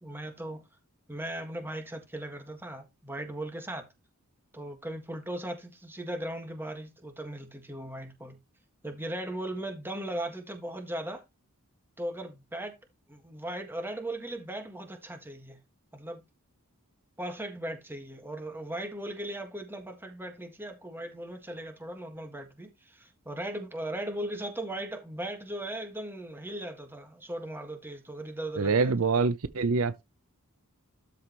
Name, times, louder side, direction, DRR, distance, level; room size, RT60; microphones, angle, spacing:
voice 1, 0.0-0.6 1.1-3.8 4.5-8.4 8.8-11.2 12.0-12.7 13.1-15.6 15.9-16.2 17.2-28.9, right 1 dB, 10° right, 1.6 m, -38 dB
voice 2, 28.6-30.0, right 4 dB, 70° right, 0.6 m, -25 dB
12.5 x 4.9 x 3.0 m
head